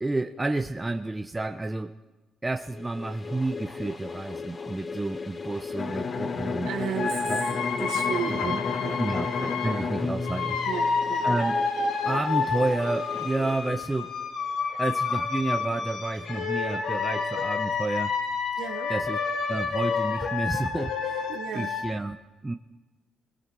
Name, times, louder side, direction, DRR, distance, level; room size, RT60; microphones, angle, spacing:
voice 1, 0.0-2.0 2.4-6.7 7.3-7.4 7.8-8.6 9.0-10.6 11.2-11.6 12.0-14.1 14.8-18.1 18.9-19.2 19.5-21.2 21.5-22.2 22.4-22.6, right 2 dB, 15° right, 6 dB, 1.1 m, -30 dB
sound 1, 2.7-14.5, left 4 dB, 30° left, 1.5 m, -38 dB
Bowed string instrument, 5.8-11.4, left 4 dB, 50° left, 2.5 m, -32 dB
voice 2, 6.6-7.3 7.8-9.0 10.7-11.3 18.6-18.9 21.3-21.7, right 9 dB, 80° right, 4 dB, 1.6 m, -34 dB
sound 2, 7.0-9.8 10.2-21.8, left 5 dB, 80° left, 5.4 m, -29 dB
29.0 x 20.5 x 6.3 m, 1.1 s
cardioid pair, 90°, 0 cm